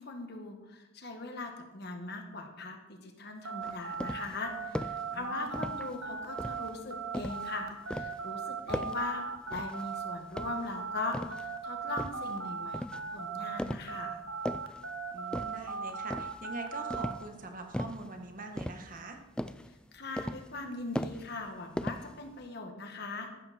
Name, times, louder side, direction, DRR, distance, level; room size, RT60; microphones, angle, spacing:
voice 1, 0.0-12.8 13.1-14.2 19.7-23.3, left 3 dB, 50° left, 4 dB, 1.9 m, -40 dB
sound 1, 3.4-13.6 13.9-17.1, right 5 dB, 85° right, 1.3 m, -38 dB
sound 2, 3.6-4.4 4.7-5.1 5.5-6.0 6.4-7.5 7.9-8.2 8.7-9.1 9.5-9.9 10.3-11.5 12.0-12.3 12.7-13.1 13.6-14.0 14.3-14.8 15.3-15.7 16.1-16.5 16.9-17.3 17.7-18.1 18.6-19.1 19.4-19.7 20.2-20.6 21.0-21.5 21.8-22.4, left 1 dB, 5° left, 0.3 m, -38 dB
voice 2, 5.1-5.6 15.1-19.2, right 3 dB, 40° right, 4 dB, 1.5 m, -44 dB
14.0 x 12.5 x 4.4 m, 1.0 s
head